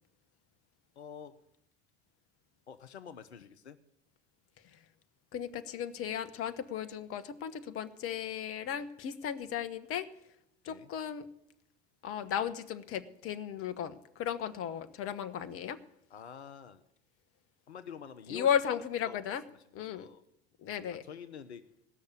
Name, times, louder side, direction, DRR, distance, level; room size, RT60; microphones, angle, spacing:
voice 1, 1.0-1.4 2.7-3.8 10.7-10.9 16.1-16.8 17.7-18.5 19.0-19.2 19.9-20.2 21.0-21.7, left 7 dB, 85° left, 11 dB, 0.8 m, -47 dB
voice 2, 5.3-10.1 10.6-11.3 12.0-15.8 18.3-19.4 19.7-20.1 20.6-21.0, left 9 dB, 40° left, 10 dB, 1.1 m, -35 dB
17.5 x 6.5 x 8.5 m, 0.80 s
hypercardioid pair, 75°, 33 cm